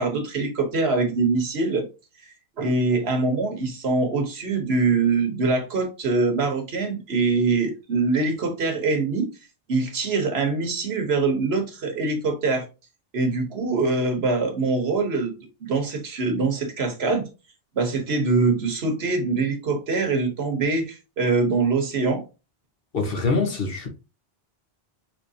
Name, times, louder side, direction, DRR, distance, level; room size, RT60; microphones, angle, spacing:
voice 1, 0.0-1.9 2.6-9.3 9.7-12.7 13.1-15.3 15.6-17.3 17.7-22.2, right 3 dB, 85° right, 1.4 m, -23 dB
voice 2, 22.9-23.9, left 4 dB, 65° left, 1.4 m, -24 dB
5.9 x 3.1 x 2.7 m
omnidirectional pair, 1.0 m